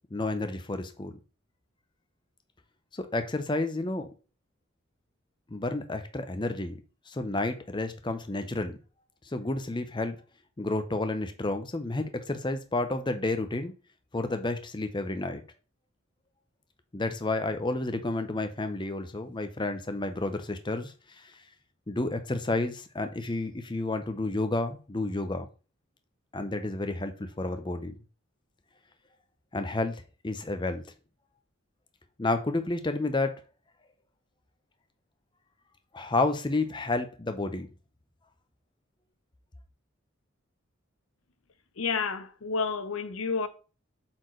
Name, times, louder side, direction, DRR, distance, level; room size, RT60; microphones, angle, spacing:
voice 1, 0.1-1.2 3.0-4.1 5.5-6.8 7.1-8.8 9.3-10.2 10.6-13.7 14.1-15.4 16.9-21.3 21.9-25.5 26.3-27.9 29.5-30.8 32.2-33.4 35.9-37.7, left 2 dB, 20° left, 0.7 m, -31 dB
voice 2, 41.8-43.5, left 5 dB, 80° left, 0.7 m, -30 dB
7.8 x 4.4 x 3.1 m
head